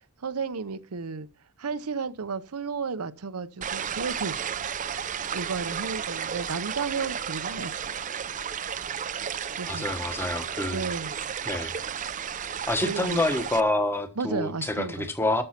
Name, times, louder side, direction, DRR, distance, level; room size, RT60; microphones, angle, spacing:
voice 1, 0.2-1.3 1.6-4.4 5.3-7.9 9.6-10.2 10.7-11.1 12.8-13.2 14.2-15.1, right 4 dB, 85° right, 0.7 m, -33 dB
sound 1, 3.6-13.6, right 8 dB, 35° right, 0.5 m, -33 dB
voice 2, 9.7-10.9 11.4-11.7 12.7-15.4, left 2 dB, 10° left, 1.2 m, -27 dB
13.0 x 5.4 x 5.8 m
head